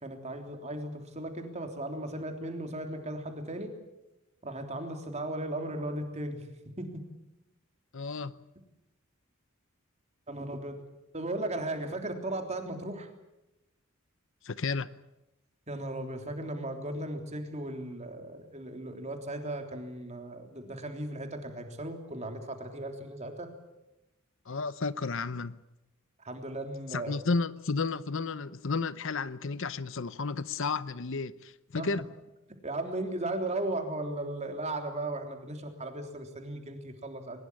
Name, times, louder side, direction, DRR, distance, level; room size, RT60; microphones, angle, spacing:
voice 1, 0.0-3.7 4.4-6.4 6.8-7.0 10.3-10.8 11.1-13.1 15.7-23.5 26.2-27.1 31.8-31.9 32.6-37.4, right 1 dB, 30° right, 3.4 m, -36 dB
voice 2, 7.9-8.4 14.4-14.9 24.5-25.6 26.9-32.1, left 4 dB, 60° left, 0.8 m, -32 dB
21.5 x 20.5 x 9.8 m
head